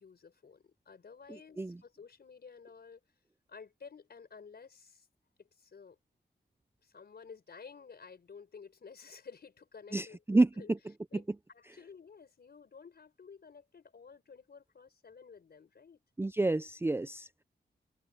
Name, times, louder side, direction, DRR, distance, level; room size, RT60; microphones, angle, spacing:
voice 1, 0.0-3.0 3.5-5.1 5.4-6.0 6.8-10.7 11.1-11.2 11.5-16.0, left 5 dB, 55° left, 4.9 m, -53 dB
voice 2, 1.3-1.8 9.9-10.5 11.1-11.2 16.2-17.3, right 2 dB, 10° right, 0.4 m, -29 dB
open air
wide cardioid pair, 175°, 19 cm